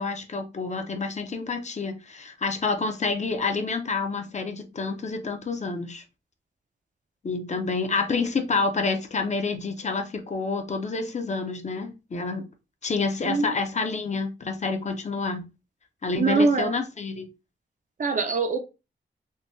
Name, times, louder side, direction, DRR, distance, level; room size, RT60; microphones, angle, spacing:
voice 1, 0.0-6.0 7.2-12.5 12.8-15.4 16.0-17.3, left 4 dB, 40° left, 0.5 m, -28 dB
voice 2, 16.2-16.8 18.0-18.6, right 4 dB, 45° right, 0.5 m, -23 dB
3.7 x 2.1 x 2.5 m
wide cardioid pair, 110°, 19 cm